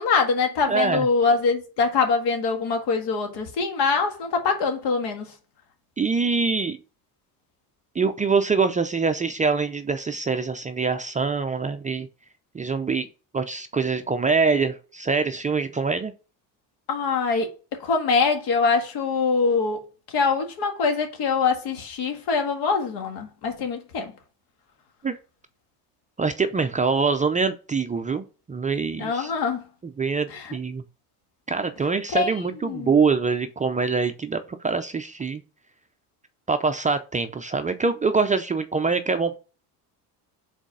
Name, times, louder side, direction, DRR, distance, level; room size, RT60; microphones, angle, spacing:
voice 1, 0.0-5.3 16.9-17.5 17.8-19.8 20.1-24.1 29.0-29.6 30.3-30.6 32.1-32.3 32.6-32.9, left 4 dB, 70° left, 1.8 m, -23 dB
voice 2, 0.7-1.1 6.0-6.8 8.0-12.1 12.5-13.1 13.3-16.1 25.0-25.2 26.2-29.3 30.0-30.8 31.5-35.4 36.5-39.3, right 4 dB, 20° right, 0.5 m, -24 dB
5.0 x 4.1 x 4.9 m
supercardioid pair, 100°, 44 cm